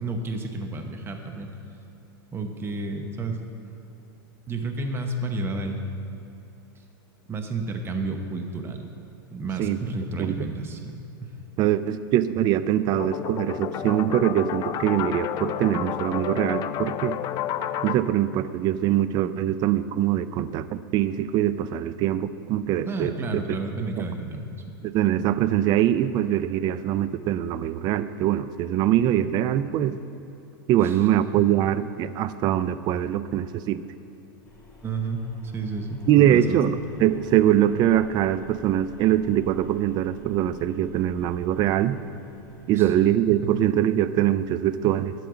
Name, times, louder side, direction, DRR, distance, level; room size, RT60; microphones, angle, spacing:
voice 1, 0.0-1.5 2.3-3.4 4.5-5.8 7.3-8.9 9.3-11.4 22.8-24.8 30.8-31.1 34.8-36.8 42.7-42.9 43.3-43.5, right 2 dB, 20° right, 5 dB, 0.9 m, -31 dB
voice 2, 11.6-17.2 17.8-23.4 24.0-24.1 24.8-30.0 30.7-33.8 36.1-42.0 42.7-45.1, right 11 dB, 35° right, 14 dB, 0.4 m, -23 dB
sound 1, 12.9-17.9, left 10 dB, 30° left, 0.3 m, -30 dB
sound 2, 34.4-42.8, left 2 dB, 15° left, 2.7 m, -49 dB
11.5 x 4.6 x 8.1 m, 2.9 s
supercardioid pair, 130°, 12 cm